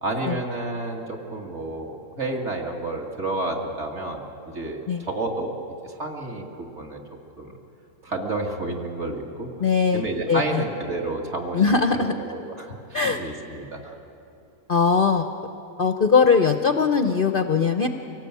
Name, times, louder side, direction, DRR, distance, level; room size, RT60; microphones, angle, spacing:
voice 1, 0.0-4.2 4.5-5.5 5.8-7.0 7.4-7.6 8.0-9.5 9.9-11.6 11.9-13.9, right 2 dB, 45° right, 0 dB, 2.4 m, -30 dB
voice 2, 9.6-10.6 11.5-12.2 12.9-13.2 14.7-15.3 15.8-17.9, left 5 dB, 45° left, 7 dB, 0.7 m, -20 dB
24.5 x 18.0 x 8.3 m, 2.9 s
omnidirectional pair, 1.7 m